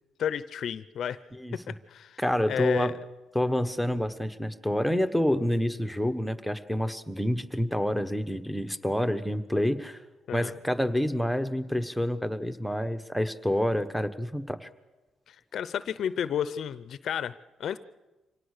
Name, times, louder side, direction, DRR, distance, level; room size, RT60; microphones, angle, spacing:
voice 1, 0.2-1.2 1.5-2.2 2.5-2.9 10.3-10.5 15.3-17.3 17.6-17.8, left 8 dB, 65° left, 16 dB, 0.6 m, -32 dB
voice 2, 2.2-2.9 3.3-10.0 10.3-14.7, equal, ahead, 9 dB, 1.2 m, -28 dB
25.0 x 18.5 x 6.6 m, 1.1 s
cardioid pair, 90°, 0 cm